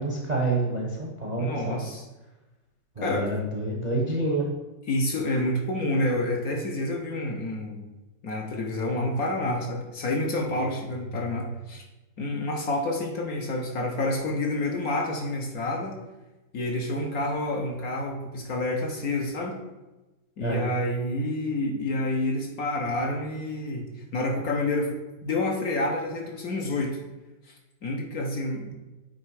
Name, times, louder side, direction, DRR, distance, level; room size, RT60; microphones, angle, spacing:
voice 1, 0.0-1.8 3.0-4.5 20.4-20.7, right 2 dB, 35° right, -1 dB, 0.7 m, -28 dB
voice 2, 1.4-2.1 3.0-3.3 4.9-7.9 8.2-11.8 12.2-16.0 16.5-19.6 20.4-24.9 25.2-27.0 27.8-28.7, left 2 dB, 60° left, 1 dB, 1.2 m, -28 dB
8.7 x 3.2 x 4.7 m, 1.1 s
omnidirectional pair, 2.1 m